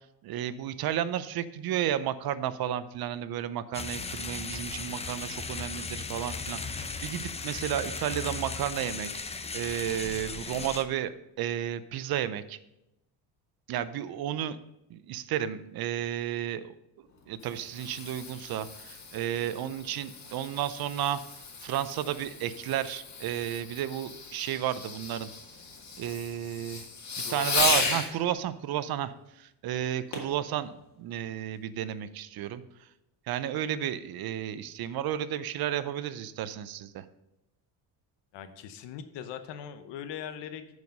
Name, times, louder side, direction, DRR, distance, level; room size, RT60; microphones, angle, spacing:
voice 1, 0.2-11.1 11.4-12.6 13.7-14.6 14.9-16.7 17.3-21.2 21.6-25.3 26.0-26.8 27.3-32.6 33.3-37.0, right 11 dB, 55° right, 14 dB, 0.6 m, -32 dB
sound 1, 3.7-10.8, left 4 dB, 15° left, 0.5 m, -37 dB
Fireworks, 17.1-28.1 30.1-30.4 31.0-31.1, left 4 dB, 35° left, 1.9 m, -35 dB
voice 2, 27.2-27.8 38.3-40.7, left 8 dB, 70° left, 10 dB, 0.9 m, -41 dB
9.4 x 4.8 x 5.3 m, 0.87 s
cardioid pair, 105°, 44 cm